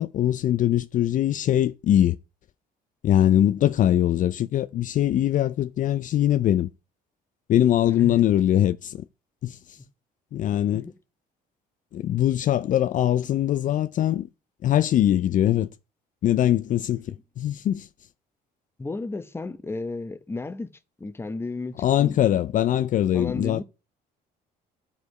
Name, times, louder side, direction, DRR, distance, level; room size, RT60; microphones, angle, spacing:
voice 1, 0.0-2.2 3.0-6.7 7.5-9.0 9.4-9.8 10.3-10.9 11.9-14.3 14.6-15.7 16.2-17.9 21.8-23.6, left 11 dB, 50° left, 0.4 m, -22 dB
voice 2, 7.9-8.2 10.7-10.9 18.8-20.7 21.0-22.3 23.1-23.6, left 3 dB, 15° left, 0.9 m, -33 dB
11.5 x 5.3 x 4.8 m
cardioid pair, 110°, 17 cm